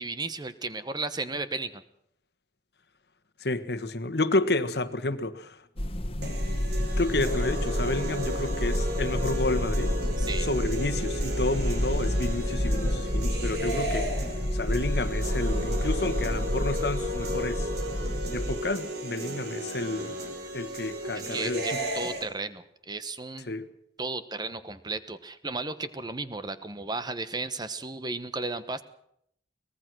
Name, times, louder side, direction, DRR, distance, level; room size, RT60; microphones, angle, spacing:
voice 1, 0.0-1.8 10.2-10.5 21.3-23.5 24.0-28.8, right 3 dB, 25° right, 1.2 m, -34 dB
voice 2, 3.4-5.5 6.2-6.3 7.0-9.9 10.4-14.1 14.5-17.7 18.3-20.1 20.5-21.6 23.5-23.7, left 2 dB, 65° left, 1.5 m, -30 dB
sound 1, 5.8-18.6, equal, 35° left, 1.7 m, -29 dB
sound 2, 6.2-22.2, equal, 60° right, 5.7 m, -34 dB
24.0 x 19.0 x 6.3 m
head